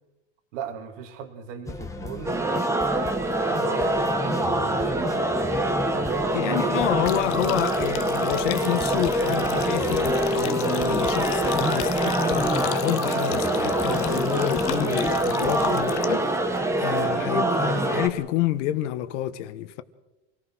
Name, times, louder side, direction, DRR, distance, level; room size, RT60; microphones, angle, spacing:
voice 1, 0.5-5.2 5.9-6.7, right 7 dB, 70° right, 3.2 m, -38 dB
sound 1, 1.7-15.8, left 2 dB, 10° left, 1.8 m, -36 dB
sound 2, 2.3-18.1, right 1 dB, 5° right, 1.6 m, -25 dB
voice 2, 6.3-19.8, left 14 dB, 70° left, 1.7 m, -29 dB
sound 3, 7.0-16.4, left 14 dB, 35° left, 1.0 m, -34 dB
27.5 x 19.0 x 6.4 m
supercardioid pair, 160°, 37 cm